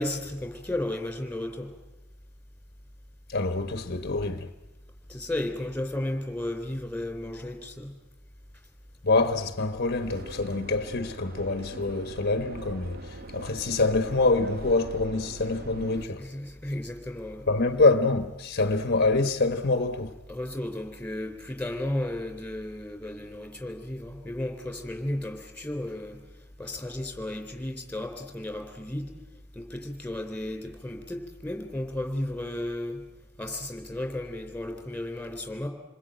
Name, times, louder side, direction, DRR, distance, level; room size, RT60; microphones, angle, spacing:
voice 1, 0.0-1.7 5.1-7.9 16.1-17.5 20.3-26.2 26.6-29.1 29.5-33.0 33.4-35.7, left 1 dB, 5° left, 3.6 m, -34 dB
voice 2, 3.3-4.5 9.0-16.2 17.5-20.1, left 3 dB, 50° left, 1.0 m, -25 dB
Subway metro underground, 10.0-16.1, right 1 dB, 50° right, 0.8 m, -42 dB
28.0 x 21.0 x 9.0 m
head